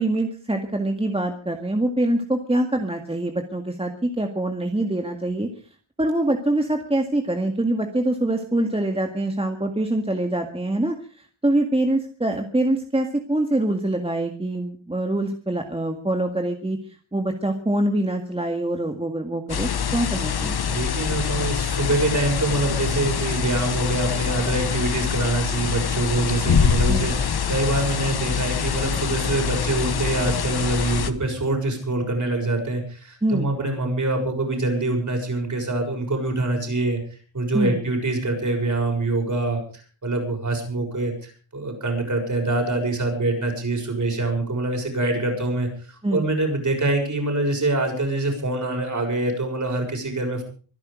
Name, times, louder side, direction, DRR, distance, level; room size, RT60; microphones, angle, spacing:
voice 1, 0.0-5.5 6.0-16.8 17.1-20.6 26.9-27.1 33.2-33.5 37.5-37.8 46.0-46.3, right 1 dB, 10° right, 4 dB, 1.8 m, -24 dB
sound 1, 19.5-31.1, left 7 dB, 50° left, 1.3 m, -24 dB
voice 2, 20.7-39.6 40.0-50.4, right 2 dB, 40° right, 3 dB, 6.8 m, -25 dB
24.5 x 10.5 x 5.1 m, 0.41 s
wide cardioid pair, 130°, 48 cm